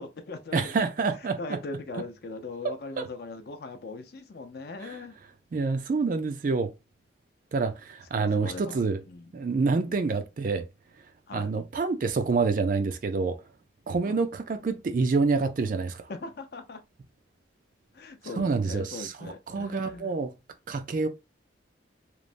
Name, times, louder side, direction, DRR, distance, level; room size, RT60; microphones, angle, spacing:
voice 1, 0.0-0.8 1.2-5.2 8.1-9.3 9.8-10.1 11.3-11.5 14.0-14.2 16.1-16.8 17.9-20.2, left 3 dB, 55° left, 0.5 m, -40 dB
voice 2, 0.5-1.6 2.6-3.1 4.8-5.0 5.5-6.7 7.5-9.0 9.3-10.7 11.3-13.4 13.9-16.0 18.4-20.3 20.7-21.1, right 4 dB, 45° right, 0.3 m, -27 dB
3.1 x 2.0 x 2.5 m
head